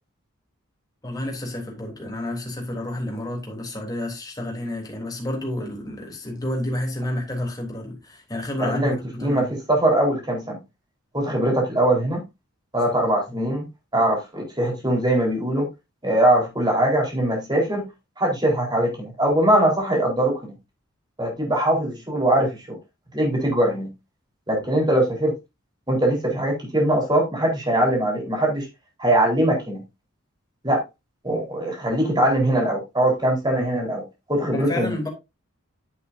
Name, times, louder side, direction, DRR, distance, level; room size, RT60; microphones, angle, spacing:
voice 1, 1.0-9.4 13.3-13.4 34.5-35.1, left 1 dB, 20° left, 3.4 m, -30 dB
voice 2, 8.6-10.6 11.1-12.2 12.7-13.7 13.9-15.7 16.0-17.8 18.2-20.5 21.2-22.8 23.1-23.9 24.5-25.3 25.9-28.7 29.0-29.8 30.6-30.8 31.2-34.0 34.3-35.0, right 1 dB, 20° right, 4.3 m, -21 dB
9.8 x 7.9 x 2.7 m
head